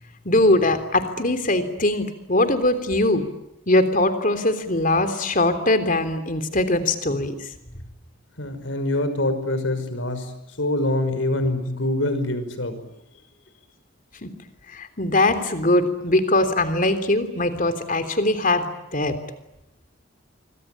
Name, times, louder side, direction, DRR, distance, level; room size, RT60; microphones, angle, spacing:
voice 1, 0.2-3.2 3.7-7.3 14.2-14.3 14.7-18.7 18.9-19.1, left 2 dB, 45° left, 9 dB, 3.3 m, -21 dB
voice 2, 8.4-10.3 10.6-12.8, left 1 dB, 80° left, 10 dB, 5.8 m, -25 dB
27.0 x 24.0 x 8.6 m, 0.90 s
head